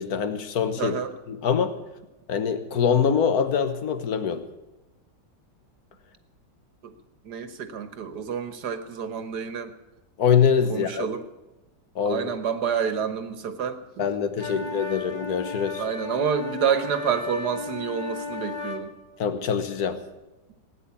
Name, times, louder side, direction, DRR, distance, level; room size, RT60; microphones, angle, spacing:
voice 1, 0.0-1.0 1.3-1.7 2.3-4.4 10.2-11.1 12.0-12.3 14.0-15.8 19.2-20.0, left 7 dB, 60° left, 10 dB, 1.6 m, -24 dB
voice 2, 0.8-1.1 6.8-6.9 7.2-9.7 10.7-11.2 12.0-14.1 14.5-14.7 15.8-18.9, right 7 dB, 65° right, 10 dB, 1.7 m, -28 dB
sound 1, 14.4-18.8, left 4 dB, 15° right, 1.6 m, -34 dB
17.5 x 9.8 x 8.5 m, 1.1 s
omnidirectional pair, 1.9 m